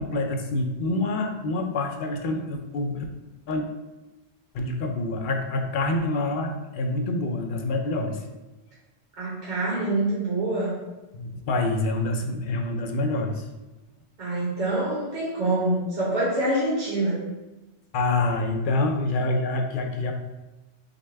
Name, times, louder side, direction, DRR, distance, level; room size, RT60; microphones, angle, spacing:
voice 1, 0.0-3.0 3.5-3.7 4.5-8.2 11.1-13.4 17.9-20.1, left 2 dB, 55° left, 3 dB, 0.6 m, -26 dB
voice 2, 9.2-10.7 14.2-17.2, right 2 dB, 40° right, -7 dB, 1.4 m, -25 dB
6.4 x 2.2 x 3.3 m, 1.1 s
omnidirectional pair, 1.2 m